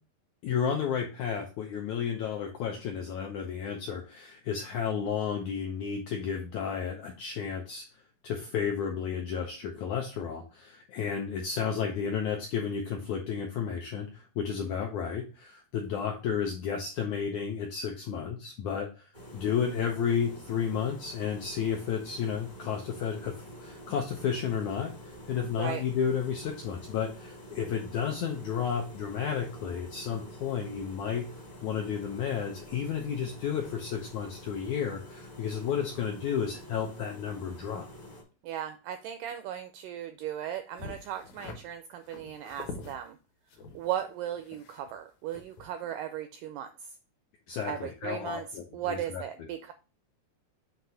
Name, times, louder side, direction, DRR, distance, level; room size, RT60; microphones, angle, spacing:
voice 1, 0.4-7.8 8.2-31.3 31.6-37.8 47.5-49.2, left 7 dB, 85° left, 2 dB, 1.6 m, -32 dB
sound 1, 19.1-38.2, equal, 35° left, 0.7 m, -47 dB
voice 2, 38.4-43.2 43.7-46.9 47.7-48.5 48.7-49.7, right 10 dB, 85° right, 8 dB, 1.9 m, -37 dB
sound 2, 40.8-41.6 42.0-43.0 43.5-45.0 45.3-45.6, left 4 dB, 65° left, 2.0 m, -44 dB
7.7 x 2.9 x 5.5 m, 0.34 s
omnidirectional pair, 4.3 m